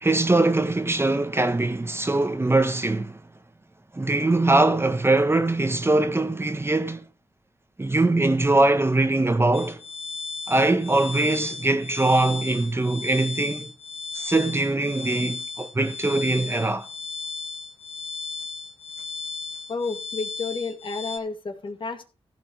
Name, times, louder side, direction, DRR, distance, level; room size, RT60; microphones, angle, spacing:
voice 1, 0.0-3.2 3.9-7.0 7.8-9.8 10.5-13.7 14.1-16.9, right 2 dB, 25° right, 1.2 m, -22 dB
sound 1, 9.5-21.2, left 4 dB, 75° left, 3.9 m, -35 dB
voice 2, 19.7-22.1, left 4 dB, 50° left, 2.1 m, -31 dB
15.0 x 5.3 x 6.4 m
cardioid pair, 70°, 10 cm